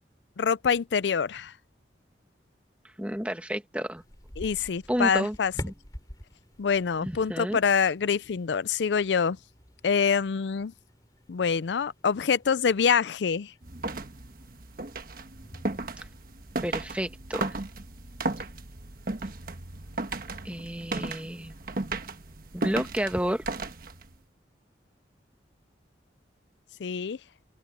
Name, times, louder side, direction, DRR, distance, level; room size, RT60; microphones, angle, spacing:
voice 1, 0.4-1.5 4.4-5.5 6.6-9.4 9.8-10.7 11.3-13.5 26.8-27.2, left 6 dB, 75° left, 0.4 m, -25 dB
voice 2, 3.0-4.0 4.9-5.7 7.0-7.6 16.6-17.6 20.4-21.5 22.5-23.4, equal, 5° right, 1.4 m, -31 dB
sound 1, 3.9-23.7, equal, 20° left, 3.5 m, -51 dB
sound 2, 13.6-24.2, right 2 dB, 50° right, 1.3 m, -35 dB
open air
head